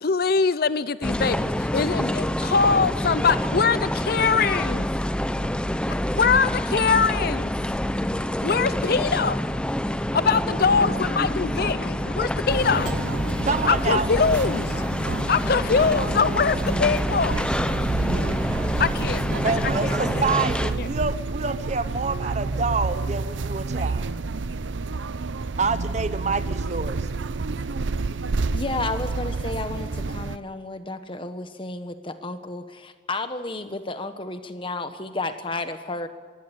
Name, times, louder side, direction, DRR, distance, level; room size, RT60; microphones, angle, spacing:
voice 1, 0.0-4.9 5.3-5.5 6.1-7.5 8.4-9.4 10.1-13.4 13.6-14.8 15.3-17.4 18.8-19.2 19.6-19.9 20.3-20.4 20.8-20.9, left 5 dB, 55° left, 0.6 m, -23 dB
sound 1, 1.0-20.7, left 1 dB, 5° left, 0.6 m, -27 dB
sound 2, 12.5-30.4, right 3 dB, 80° right, 0.7 m, -29 dB
voice 2, 13.4-14.1 19.4-24.1 25.6-27.1, right 4 dB, 40° right, 0.8 m, -27 dB
voice 3, 28.5-36.1, left 2 dB, 25° left, 1.3 m, -32 dB
22.5 x 16.0 x 8.3 m
head